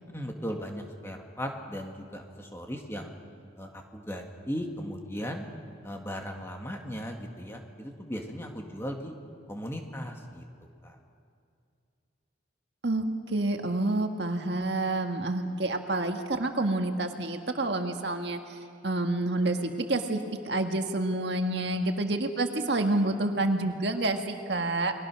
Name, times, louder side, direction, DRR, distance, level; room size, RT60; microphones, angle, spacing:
voice 1, 0.1-3.1 3.6-5.5 5.8-9.1 9.5-10.4 10.8-11.0, equal, 15° left, 2 dB, 2.1 m, -37 dB
voice 2, 12.8-18.4 18.8-20.2 20.4-24.9, right 2 dB, 60° right, 5 dB, 1.7 m, -28 dB
29.5 x 22.0 x 6.2 m, 2.4 s
head